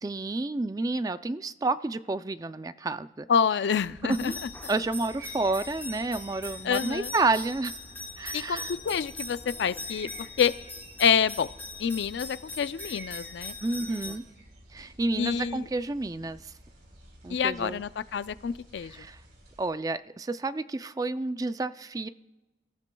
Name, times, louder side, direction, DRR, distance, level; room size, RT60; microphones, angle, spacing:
voice 1, 0.0-3.3 4.1-4.4 4.7-7.7 8.2-8.7 13.6-14.2 14.7-16.5 17.2-17.8 18.9-19.2 19.6-22.1, right 3 dB, 20° right, 12 dB, 0.4 m, -30 dB
voice 2, 3.3-4.5 6.6-7.1 8.3-10.5 11.0-11.5 11.8-13.5 15.2-15.7 17.3-19.0, left 7 dB, 80° left, 16 dB, 0.4 m, -27 dB
sound 1, 3.7-19.7, right 1 dB, 70° right, 3.9 m, -52 dB
sound 2, 4.1-14.2, left 2 dB, 10° left, 1.1 m, -41 dB
26.0 x 14.0 x 2.3 m, 1.1 s
head